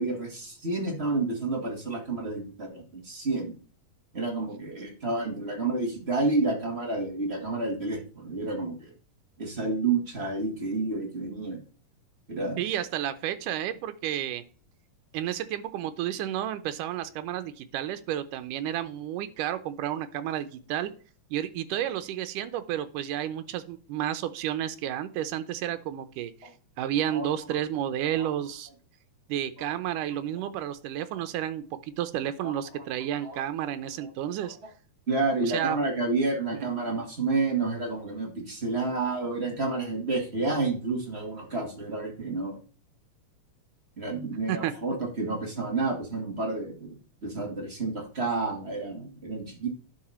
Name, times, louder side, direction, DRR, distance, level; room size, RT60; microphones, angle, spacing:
voice 1, 0.0-3.5 4.1-8.9 9.4-11.6 12.3-12.6 27.1-27.3 28.1-28.3 29.6-29.7 32.4-32.8 33.2-33.4 35.1-42.6 44.0-47.0 47.2-49.7, right 3 dB, 20° right, 0 dB, 2.1 m, -30 dB
voice 2, 12.6-14.4 15.1-20.9 21.3-26.5 26.8-28.7 29.3-34.6 35.4-35.8 36.5-36.8 44.5-44.7, right 11 dB, 85° right, 10 dB, 2.4 m, -31 dB
11.0 x 5.6 x 4.4 m, 0.39 s
omnidirectional pair, 3.7 m